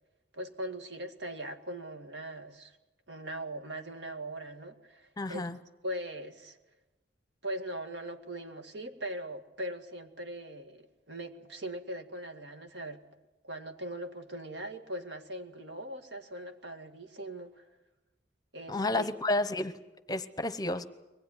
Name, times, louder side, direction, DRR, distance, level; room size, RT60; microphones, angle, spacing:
voice 1, 0.3-2.8 3.1-5.5 5.8-6.6 7.4-13.0 13.4-17.6 18.5-19.1, right 1 dB, 70° right, 7 dB, 2.0 m, -40 dB
voice 2, 5.2-5.6 18.7-19.7 20.1-20.8, left 2 dB, 20° left, 12 dB, 0.9 m, -31 dB
23.0 x 18.5 x 9.9 m, 1.1 s
head